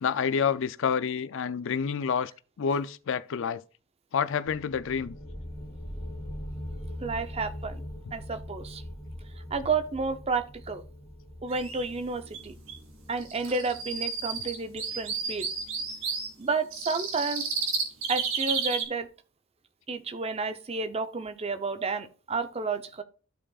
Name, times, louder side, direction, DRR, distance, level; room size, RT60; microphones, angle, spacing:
voice 1, 0.0-2.3 2.6-3.6 4.1-5.2, left 6 dB, 60° left, 0.4 m, -28 dB
sound 1, 4.5-15.9, equal, 15° left, 1.3 m, -42 dB
voice 2, 7.0-7.8 8.1-8.8 9.5-10.8 11.4-12.5 13.1-15.5 16.4-17.5 18.1-19.1 19.9-23.0, right 4 dB, 30° right, 0.6 m, -31 dB
sound 2, 11.5-11.8 12.3-12.4 12.7-12.8 13.2-16.3 16.7-18.8, right 5 dB, 75° right, 2.1 m, -32 dB
13.5 x 5.0 x 2.4 m
head